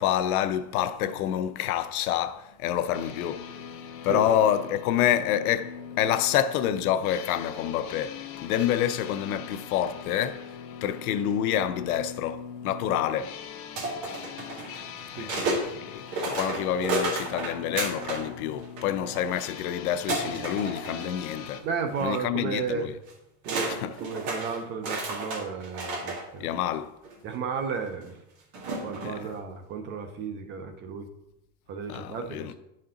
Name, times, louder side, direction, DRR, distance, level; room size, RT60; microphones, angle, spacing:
voice 1, 0.0-3.7 4.0-10.5 10.8-13.4 15.1-21.7 22.0-23.0 23.7-24.0 26.4-26.9 29.0-29.3 31.9-32.6, left 10 dB, 80° left, 0.7 m, -28 dB
sound 1, 2.9-21.6, left 7 dB, 35° left, 0.6 m, -42 dB
sound 2, 13.8-15.6 16.1-18.3 18.6-19.4 20.1-21.5 21.9-22.1 23.1-23.2 23.4-26.2 27.0-27.1 28.5-29.3, right 2 dB, 45° right, 1.8 m, -32 dB
voice 2, 15.2-15.8 21.6-22.9 23.5-26.5 27.2-28.2 28.8-31.1 31.7-32.6, right 5 dB, 25° right, 0.5 m, -34 dB
10.0 x 4.3 x 3.8 m
supercardioid pair, 155°, 43 cm